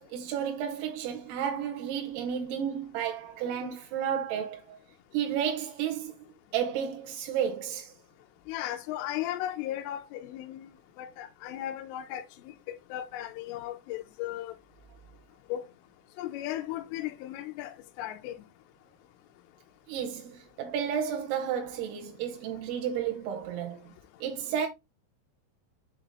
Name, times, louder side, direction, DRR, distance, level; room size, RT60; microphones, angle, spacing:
voice 1, 0.0-4.8 5.1-6.2 6.5-7.9 19.9-23.9 24.2-24.7, right 8 dB, 80° right, 2.3 m, -32 dB
voice 2, 8.5-10.7 11.0-12.5 12.9-14.5 15.5-15.7 16.2-18.3, left 13 dB, 85° left, 3.2 m, -36 dB
7.5 x 4.0 x 3.5 m
omnidirectional pair, 5.8 m